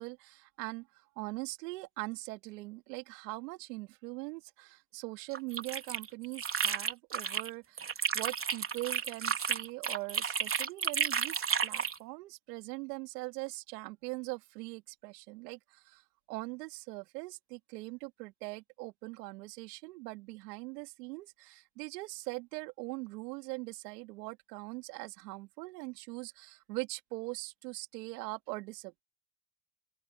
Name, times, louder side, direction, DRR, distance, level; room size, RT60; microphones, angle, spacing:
voice 1, 0.0-29.0, right 23 dB, 85° right, 2.6 m, -42 dB
sound 1, 5.3-7.5 7.8-12.0, right 6 dB, 25° right, 3.7 m, -32 dB
open air
supercardioid pair, 105°, 47 cm